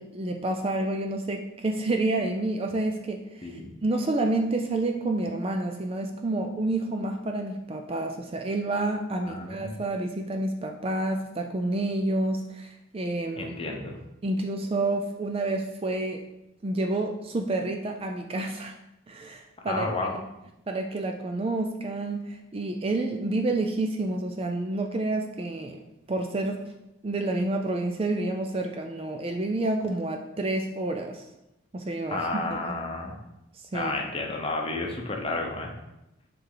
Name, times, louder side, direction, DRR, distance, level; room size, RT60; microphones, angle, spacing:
voice 1, 0.0-13.5 14.2-16.2 16.6-18.7 19.1-19.9 20.7-25.8 26.1-26.6 27.0-31.2 31.7-32.8 33.7-33.9, right 2 dB, 25° right, 4 dB, 0.4 m, -29 dB
voice 2, 9.2-9.8 13.4-14.0 19.7-20.1 32.1-33.2 33.7-35.7, left 2 dB, 25° left, 1 dB, 0.8 m, -31 dB
7.4 x 3.3 x 3.9 m, 0.90 s
head